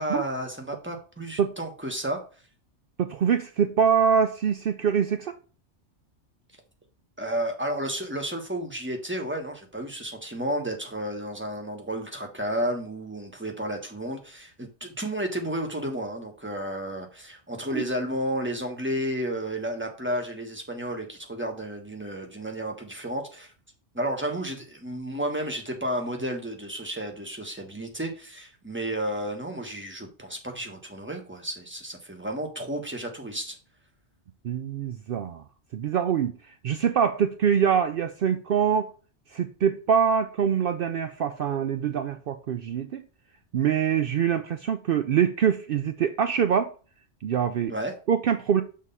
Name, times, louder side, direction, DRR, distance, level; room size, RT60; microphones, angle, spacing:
voice 1, 0.0-2.2 7.2-23.5 23.9-33.6 47.7-47.9, right 1 dB, 10° right, 1.3 m, -32 dB
voice 2, 3.0-5.3 17.7-17.8 34.4-35.4 35.7-36.3 36.6-38.9 39.3-43.0 43.5-46.7 47.2-47.7 48.1-48.6, right 7 dB, 60° right, 0.7 m, -24 dB
6.4 x 3.7 x 5.4 m
omnidirectional pair, 1.2 m